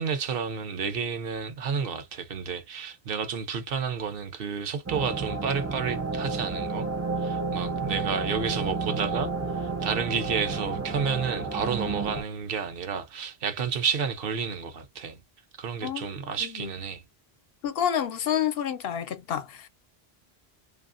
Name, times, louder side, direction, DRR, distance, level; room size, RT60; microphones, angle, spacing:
voice 1, 0.0-6.9 7.2-9.3 9.6-15.2 15.6-17.0, right 6 dB, 65° right, 0.8 m, -31 dB
sound 1, 4.9-12.2, right 4 dB, 25° right, 0.3 m, -31 dB
voice 2, 16.4-16.7 17.6-19.7, left 9 dB, 70° left, 0.8 m, -29 dB
2.8 x 2.5 x 2.4 m
omnidirectional pair, 1.1 m